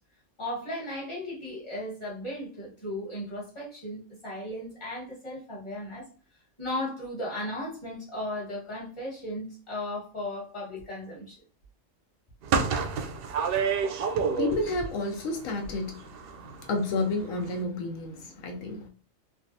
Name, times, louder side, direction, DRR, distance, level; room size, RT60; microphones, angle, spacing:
voice 1, 0.4-6.0 6.6-11.4, left 1 dB, 25° left, 1.5 m, -36 dB
sound 1, 12.4-14.8 15.1-16.7 17.0-17.1 17.4-17.5, right 6 dB, 65° right, 0.6 m, -28 dB
voice 2, 14.3-16.0 16.7-18.9, left 2 dB, 85° left, 1.1 m, -30 dB
3.3 x 2.5 x 2.7 m
omnidirectional pair, 1.3 m